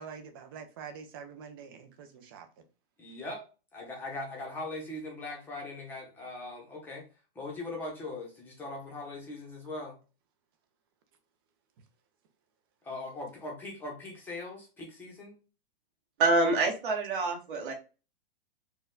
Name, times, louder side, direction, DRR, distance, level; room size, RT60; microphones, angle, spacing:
voice 1, 0.0-2.5, right 6 dB, 25° right, 0.5 m, -45 dB
voice 2, 3.0-3.4 3.7-7.1 7.3-10.0 12.8-15.4, left 2 dB, 5° left, 0.7 m, -40 dB
voice 3, 16.2-17.7, right 3 dB, 60° right, 1.4 m, -26 dB
4.4 x 2.2 x 3.7 m
supercardioid pair, 175°, 29 cm